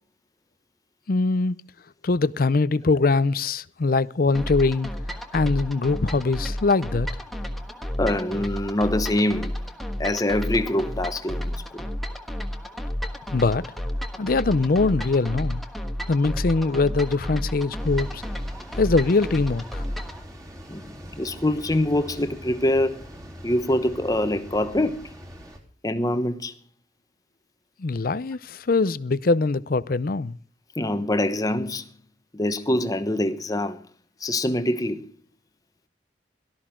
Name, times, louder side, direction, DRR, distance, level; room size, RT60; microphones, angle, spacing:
voice 1, 1.1-1.6 2.0-4.9 5.3-7.1 13.3-13.7 14.2-15.6 16.1-18.2 18.8-19.8 27.8-30.4, left 3 dB, 50° left, 0.5 m, -22 dB
sound 1, 4.3-20.2, equal, ahead, 1.3 m, -31 dB
voice 2, 8.0-9.6 10.0-11.9 20.7-23.1 23.4-25.1 25.8-26.5 30.8-31.9 32.3-33.8 34.2-35.0, left 1 dB, 20° left, 1.0 m, -24 dB
sound 2, 17.8-25.6, equal, 20° right, 3.4 m, -43 dB
17.5 x 13.5 x 3.7 m
head